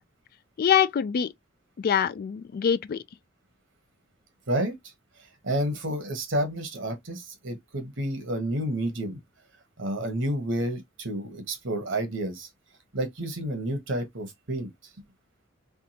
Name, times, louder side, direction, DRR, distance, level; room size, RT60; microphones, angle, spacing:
voice 1, 0.6-1.3 1.8-3.0, left 8 dB, 50° left, 0.3 m, -24 dB
voice 2, 5.4-9.2 9.8-12.5 12.9-14.7, right 1 dB, 65° right, 1.3 m, -30 dB
3.6 x 3.4 x 2.9 m
head